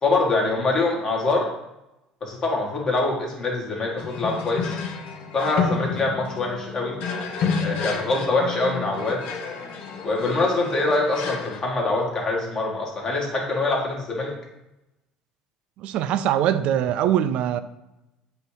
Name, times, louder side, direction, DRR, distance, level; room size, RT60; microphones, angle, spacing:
voice 1, 0.0-1.5 2.2-4.8 5.3-7.0 7.6-9.2 10.0-14.3, left 3 dB, 30° left, 1.8 m, -24 dB
sound 1, 4.0-11.6, left 5 dB, 65° left, 1.0 m, -30 dB
voice 2, 15.8-17.6, right 10 dB, 65° right, 0.4 m, -22 dB
7.8 x 2.9 x 4.9 m
cardioid pair, 120°, 2 cm